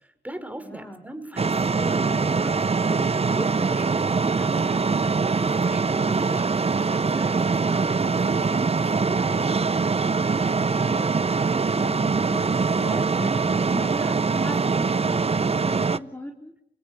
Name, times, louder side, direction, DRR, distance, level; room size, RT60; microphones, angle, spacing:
voice 1, 0.0-9.5, right 1 dB, 10° right, 9 dB, 5.5 m, -39 dB
voice 2, 0.6-1.0 10.5-16.5, equal, 10° left, 3 dB, 3.9 m, -38 dB
sound 1, 1.4-16.0, right 4 dB, 35° right, 0.9 m, -23 dB
29.5 x 17.5 x 8.4 m, 0.75 s
supercardioid pair, 45°, 17 cm